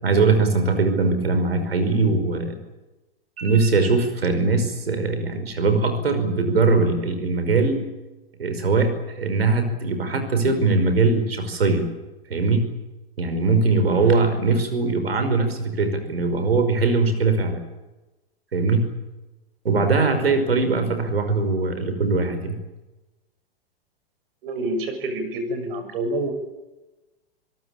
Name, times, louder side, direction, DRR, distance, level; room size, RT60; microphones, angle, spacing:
voice 1, 0.0-2.5 3.4-7.8 8.4-11.9 12.3-12.7 13.2-17.6 18.5-18.9 19.6-22.6, right 3 dB, 85° right, 8 dB, 5.4 m, -21 dB
voice 2, 24.4-26.3, right 1 dB, 65° right, 8 dB, 7.0 m, -27 dB
26.5 x 18.0 x 8.9 m, 1.1 s
hypercardioid pair, 105°, 29 cm